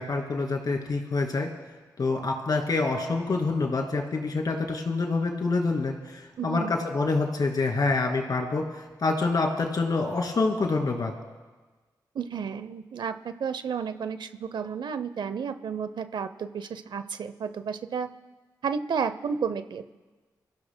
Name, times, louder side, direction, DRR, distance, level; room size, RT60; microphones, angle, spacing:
voice 1, 0.0-1.5 2.0-8.7 9.0-11.1, left 3 dB, 55° left, 2 dB, 2.6 m, -26 dB
voice 2, 6.4-6.7 12.1-18.1 18.6-19.8, right 6 dB, 75° right, 11 dB, 0.7 m, -32 dB
24.0 x 15.5 x 2.2 m, 1.3 s
cardioid pair, 50°, 8 cm